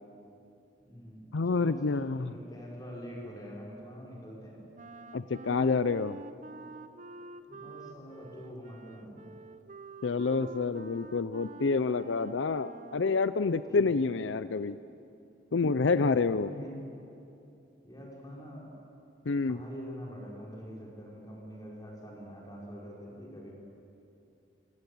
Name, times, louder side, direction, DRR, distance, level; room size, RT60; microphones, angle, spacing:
voice 1, 0.8-4.6 7.5-9.3 13.7-13.9 16.4-16.8 17.8-18.7 19.2-23.5, equal, 20° left, -3 dB, 5.5 m, -45 dB
voice 2, 1.3-2.3 5.1-6.2 10.0-14.8 15.5-16.5 19.3-19.6, left 4 dB, 80° left, 13 dB, 0.6 m, -28 dB
Wind instrument woodwind instrument, 4.7-13.3, right 3 dB, 40° right, 0.8 m, -48 dB
26.5 x 18.0 x 8.6 m, 2.7 s
head